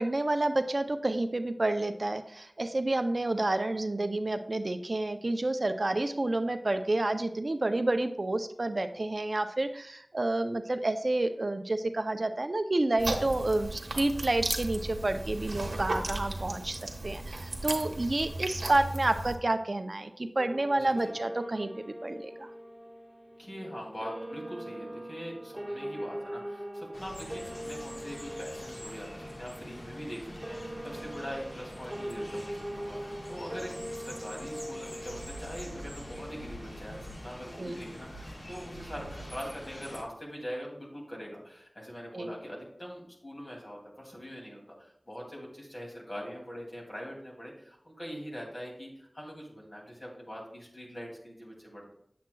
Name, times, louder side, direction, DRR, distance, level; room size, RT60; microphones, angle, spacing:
voice 1, 0.0-22.5 37.6-37.8 42.1-42.3, right 2 dB, 55° right, 8 dB, 0.5 m, -29 dB
sound 1, 13.0-19.4, right 2 dB, 90° right, 1.0 m, -35 dB
sound 2, 20.4-36.7, equal, 10° right, 1.4 m, -42 dB
voice 2, 20.8-21.1 23.4-51.9, equal, 45° left, -2 dB, 2.5 m, -43 dB
sound 3, 26.9-40.0, equal, 60° left, 1.4 m, -45 dB
8.4 x 7.4 x 2.3 m, 0.69 s
wide cardioid pair, 60°, 0 cm